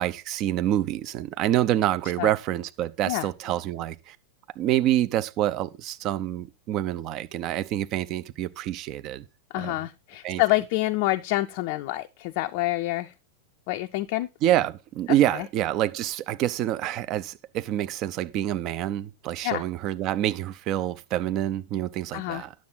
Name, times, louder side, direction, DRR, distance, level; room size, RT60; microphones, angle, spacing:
voice 1, 0.0-4.2 4.6-9.3 9.6-9.8 10.2-10.4 14.4-22.5, right 13 dB, 40° right, 0.7 m, -27 dB
voice 2, 9.5-13.1 13.7-14.3 15.1-15.5 19.4-19.6 22.1-22.4, left 18 dB, 50° left, 0.5 m, -27 dB
9.5 x 7.5 x 3.9 m
figure-of-eight pair, 90°, 0 cm